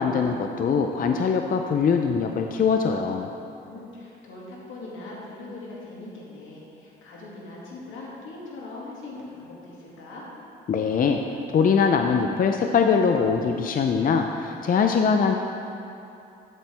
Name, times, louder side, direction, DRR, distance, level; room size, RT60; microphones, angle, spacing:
voice 1, 0.0-3.3 10.7-11.2 11.5-15.4, left 6 dB, 45° left, 4 dB, 0.5 m, -22 dB
voice 2, 3.6-10.3, left 2 dB, 85° left, -5 dB, 2.4 m, -41 dB
13.0 x 7.4 x 3.4 m, 2.7 s
cardioid pair, 90°, 20 cm